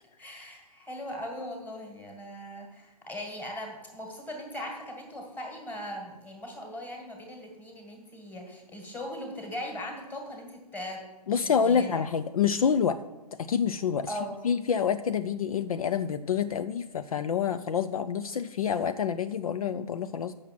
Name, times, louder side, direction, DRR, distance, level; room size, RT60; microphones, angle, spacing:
voice 1, 0.2-11.0 11.4-12.1 14.1-14.4, left 1 dB, 10° left, 2 dB, 1.7 m, -39 dB
voice 2, 11.3-13.0 13.4-14.2 14.4-20.3, left 7 dB, 60° left, 11 dB, 0.5 m, -27 dB
7.9 x 6.1 x 7.4 m, 1.1 s
figure-of-eight pair, 130°, 21 cm